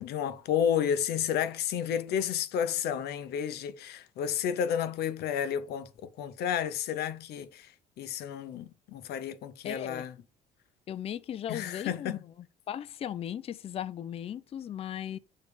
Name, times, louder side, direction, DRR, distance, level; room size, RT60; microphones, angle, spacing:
voice 1, 0.0-7.7 8.0-10.1 11.5-12.2, left 8 dB, 70° left, 0.7 m, -31 dB
voice 2, 9.6-10.1 10.9-12.2 12.7-15.2, left 10 dB, 35° left, 0.4 m, -37 dB
6.6 x 3.2 x 4.8 m
cardioid pair, 110°, 17 cm